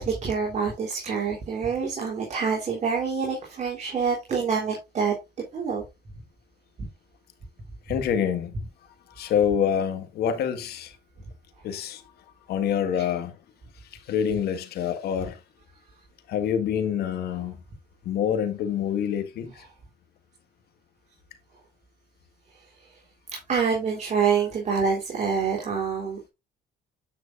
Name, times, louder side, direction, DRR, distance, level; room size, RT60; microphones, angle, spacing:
voice 1, 0.0-5.1 5.5-5.8 23.3-26.3, right 6 dB, 45° right, 3.2 m, -26 dB
voice 2, 7.9-8.5 9.1-11.0 11.6-12.0 12.5-13.4 14.1-15.4 16.3-17.6 18.0-19.6, left 8 dB, 70° left, 1.7 m, -26 dB
9.3 x 6.5 x 2.5 m
cardioid pair, 110°, 17 cm